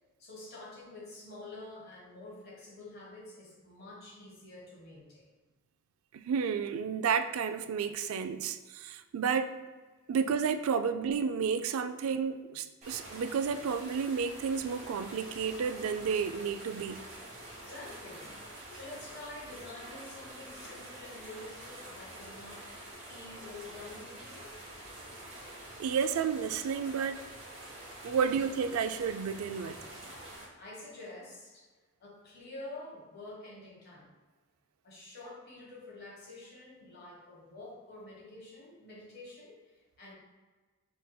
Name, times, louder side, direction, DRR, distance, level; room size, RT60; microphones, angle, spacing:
voice 1, 0.2-5.3 17.5-18.3 18.7-22.7 23.0-24.5 30.2-30.3 30.6-31.7 32.0-34.1 34.8-40.1, left 2 dB, 50° left, -4 dB, 1.3 m, -48 dB
voice 2, 6.1-9.6 10.1-17.0 25.8-27.2 28.0-29.8, right 6 dB, 80° right, 10 dB, 0.3 m, -31 dB
sound 1, 12.8-30.4, right 1 dB, 35° right, 1.3 m, -47 dB
4.8 x 4.2 x 2.2 m, 1.3 s
head